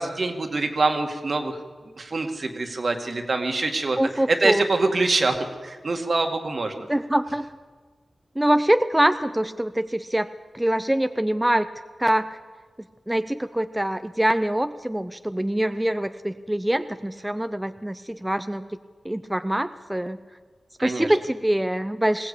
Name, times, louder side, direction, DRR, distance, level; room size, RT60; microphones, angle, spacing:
voice 1, 0.0-1.6 2.0-4.0 4.4-5.4 5.6-6.8 20.8-21.1, right 3 dB, 55° right, 5 dB, 2.1 m, -25 dB
voice 2, 4.0-4.7 6.8-7.5 8.4-10.3 10.5-11.7 12.0-12.4 13.1-18.7 19.0-20.2 20.8-22.3, right 1 dB, 10° right, 10 dB, 0.6 m, -24 dB
20.5 x 16.5 x 8.5 m, 1.5 s
wide cardioid pair, 85°, 0 cm